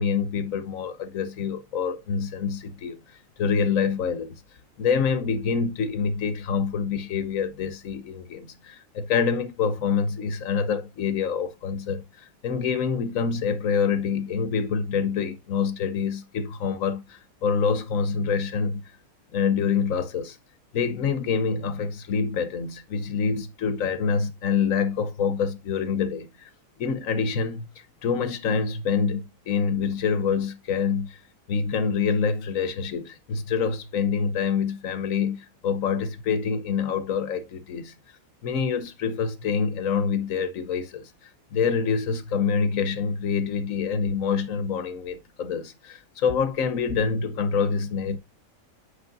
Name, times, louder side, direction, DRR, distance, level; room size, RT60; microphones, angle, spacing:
voice 1, 0.0-3.0 3.4-4.4 4.8-18.8 19.3-20.4 20.7-26.5 26.8-27.7 28.0-31.2 31.5-37.9 38.4-48.2, left 6 dB, 70° left, 1.4 m, -26 dB
9.9 x 6.3 x 2.6 m
omnidirectional pair, 1.5 m